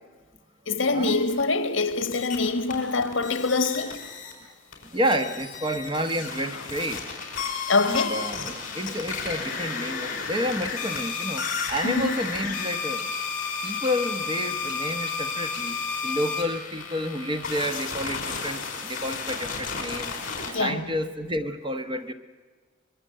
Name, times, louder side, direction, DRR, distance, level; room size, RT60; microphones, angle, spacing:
voice 1, 0.7-4.0 7.7-8.1 11.8-12.1 20.5-20.9, left 3 dB, 70° left, 1.5 m, -24 dB
sound 1, 0.8-1.4 1.9-4.3 4.7-20.5, left 5 dB, 40° left, 4.6 m, -32 dB
voice 2, 4.8-7.2 7.8-13.1 13.6-20.1 20.4-22.1, equal, 25° right, 1.1 m, -30 dB
25.0 x 21.5 x 7.7 m
head